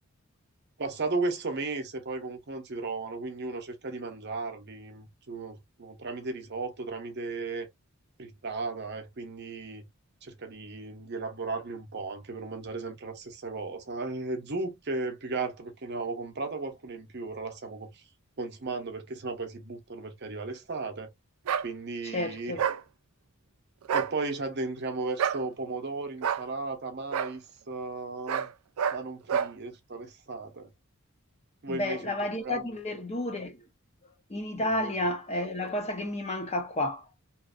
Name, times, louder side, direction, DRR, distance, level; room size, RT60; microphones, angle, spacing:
voice 1, 0.8-7.7 8.2-9.9 10.2-18.0 18.4-21.1 21.6-22.6 23.9-28.5 28.9-30.7 31.6-32.1 32.4-32.7 34.5-34.9, right 3 dB, 50° right, 0.7 m, -35 dB
sound 1, 21.5-21.7 22.6-22.8 23.8-24.1 25.2-25.4 26.2-26.4 27.1-27.3 28.3-28.5 28.8-29.0 29.3-29.5, right 8 dB, 75° right, 0.4 m, -28 dB
voice 2, 22.0-22.6 31.7-33.6 34.3-37.1, left 1 dB, 30° left, 0.6 m, -31 dB
2.9 x 2.5 x 2.4 m
head